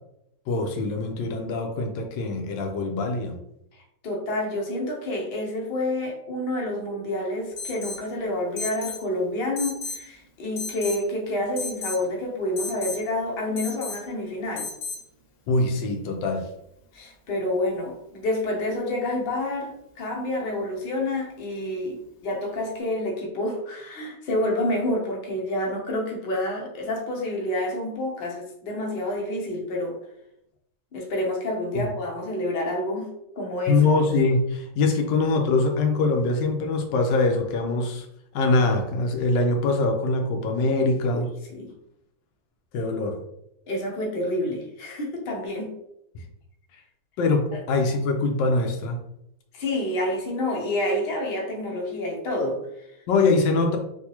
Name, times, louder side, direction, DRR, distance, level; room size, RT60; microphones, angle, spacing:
voice 1, 0.5-3.4 15.5-16.5 31.7-31.9 33.7-38.1 38.3-41.3 42.7-43.2 47.2-49.0 53.1-53.8, left 3 dB, 85° left, 4 dB, 1.3 m, -23 dB
voice 2, 4.0-14.7 16.9-30.0 30.9-33.8 41.1-41.2 41.5-41.7 43.7-45.7 47.5-47.6 49.5-52.9, left 1 dB, 50° left, -1 dB, 0.7 m, -28 dB
Alarm, 7.6-8.1 8.6-9.0 9.6-10.1 10.6-11.0 11.6-12.0 12.6-13.0 13.6-14.0 14.6-15.0, left 4 dB, 70° left, 1.2 m, -33 dB
3.5 x 2.6 x 2.8 m, 0.79 s
omnidirectional pair, 1.9 m